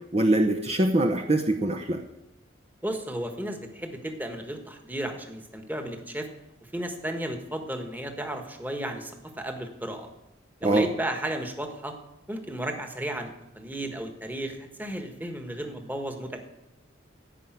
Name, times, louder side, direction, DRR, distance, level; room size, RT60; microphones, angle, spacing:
voice 1, 0.1-2.0 10.6-10.9, right 1 dB, 30° right, 3 dB, 0.8 m, -23 dB
voice 2, 2.8-6.3 6.7-10.1 10.6-11.9 12.3-13.3 13.5-16.4, right 1 dB, 10° right, 5 dB, 1.4 m, -34 dB
16.5 x 5.5 x 9.3 m, 0.93 s
head